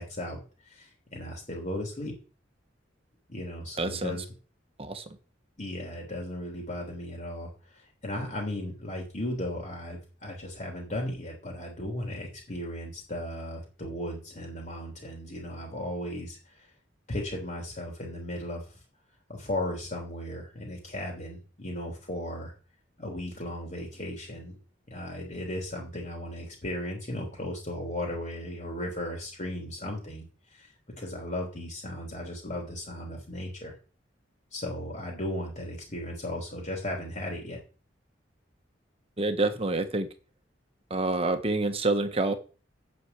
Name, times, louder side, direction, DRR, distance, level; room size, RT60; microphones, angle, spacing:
voice 1, 0.0-2.1 3.3-4.3 5.6-16.7 17.1-18.8 19.3-22.5 23.0-24.6 24.9-33.7 34.5-37.6, left 1 dB, 40° left, 0 dB, 3.2 m, -36 dB
voice 2, 3.8-4.2 4.8-5.0 39.2-40.1 40.9-42.3, right 2 dB, 30° right, 8 dB, 1.2 m, -27 dB
8.6 x 6.5 x 8.1 m, 0.36 s
head